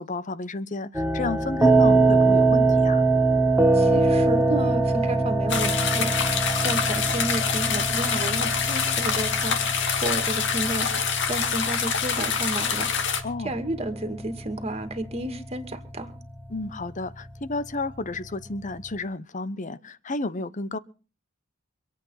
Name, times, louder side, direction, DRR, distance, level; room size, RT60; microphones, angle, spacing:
voice 1, 0.0-3.0 13.2-13.6 16.5-20.8, left 3 dB, 40° left, 0.9 m, -32 dB
sound 1, 0.9-18.9, right 3 dB, 10° right, 1.2 m, -24 dB
voice 2, 3.7-6.2 6.6-10.9 11.3-13.2 13.4-16.1, right 1 dB, 30° right, 2.3 m, -31 dB
sound 2, 5.5-13.2, left 6 dB, 65° left, 2.2 m, -26 dB
25.5 x 8.5 x 5.7 m
head